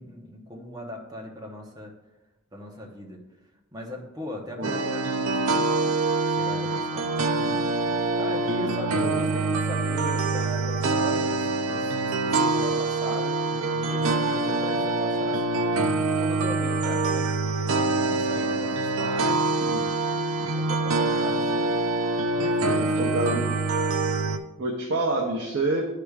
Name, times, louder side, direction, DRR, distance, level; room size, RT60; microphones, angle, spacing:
voice 1, 0.0-1.9 2.5-3.2 3.7-5.7 6.3-7.6 8.2-15.6 16.2-21.7 22.4-23.6, equal, 20° right, 0 dB, 0.8 m, -39 dB
sound 1, 4.6-24.4, right 3 dB, 90° right, 0.5 m, -25 dB
voice 2, 19.6-19.9 23.0-23.4 24.6-25.9, right 2 dB, 55° right, 0 dB, 0.7 m, -27 dB
11.0 x 4.9 x 2.4 m, 1.0 s
head